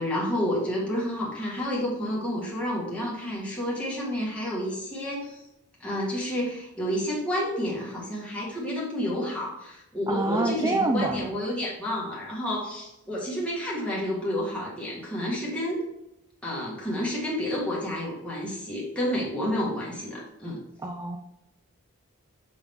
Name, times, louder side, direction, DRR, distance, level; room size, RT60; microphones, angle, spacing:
voice 1, 0.0-5.4 5.8-15.8 16.4-20.6, equal, 5° left, -6 dB, 1.9 m, -30 dB
voice 2, 10.1-11.3 20.8-21.2, right 2 dB, 15° right, 3 dB, 0.5 m, -26 dB
7.0 x 3.9 x 3.6 m, 0.88 s
head